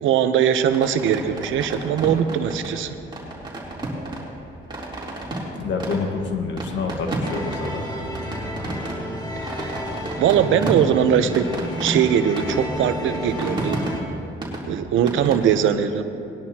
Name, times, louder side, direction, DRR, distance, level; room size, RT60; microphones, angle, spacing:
voice 1, 0.0-2.9 9.4-9.7 10.2-11.5 11.8-13.8 14.6-16.0, right 9 dB, 80° right, 9 dB, 0.8 m, -20 dB
sound 1, 0.7-15.3, right 1 dB, 25° right, 3.3 m, -32 dB
voice 2, 5.6-7.8, left 4 dB, 65° left, 3 dB, 1.6 m, -27 dB
sound 2, 7.2-14.0, left 1 dB, 20° left, 2.1 m, -31 dB
19.5 x 11.0 x 2.9 m, 2.6 s
cardioid pair, 90°, 20 cm